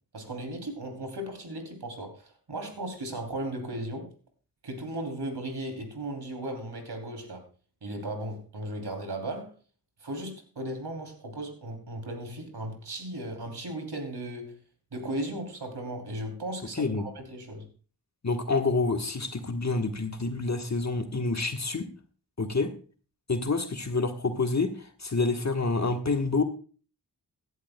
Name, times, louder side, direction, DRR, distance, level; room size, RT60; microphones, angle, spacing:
voice 1, 0.1-4.1 4.6-7.4 7.8-9.5 10.0-14.6 14.9-17.7, right 1 dB, 75° right, 4 dB, 3.1 m, -36 dB
voice 2, 16.7-17.0 18.2-21.9 22.4-22.7 23.3-26.4, left 3 dB, 40° left, 6 dB, 1.4 m, -28 dB
16.5 x 11.0 x 2.2 m, 0.38 s
cardioid pair, 45°, 41 cm